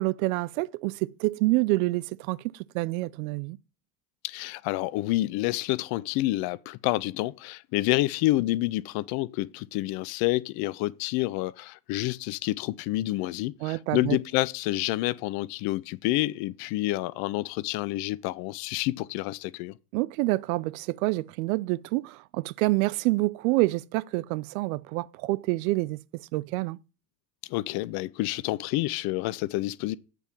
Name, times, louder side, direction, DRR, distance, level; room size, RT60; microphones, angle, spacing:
voice 1, 0.0-3.6 13.6-14.2 19.9-26.0 26.3-26.8, right 21 dB, 60° right, 0.5 m, -27 dB
voice 2, 4.2-19.8 27.5-30.0, left 18 dB, 50° left, 0.6 m, -28 dB
8.1 x 4.6 x 5.3 m
figure-of-eight pair, 65°, 48 cm